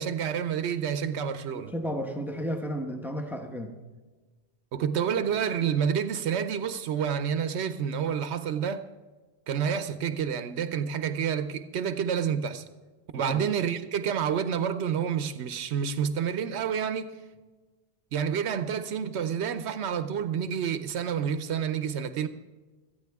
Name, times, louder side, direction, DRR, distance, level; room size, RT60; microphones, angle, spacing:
voice 1, 0.0-1.7 4.7-8.8 9.5-12.6 13.1-17.1 18.1-22.3, right 7 dB, 90° right, 1.0 m, -29 dB
voice 2, 1.5-3.7 13.1-13.4, equal, ahead, 1.1 m, -33 dB
17.5 x 13.0 x 3.5 m
omnidirectional pair, 1.1 m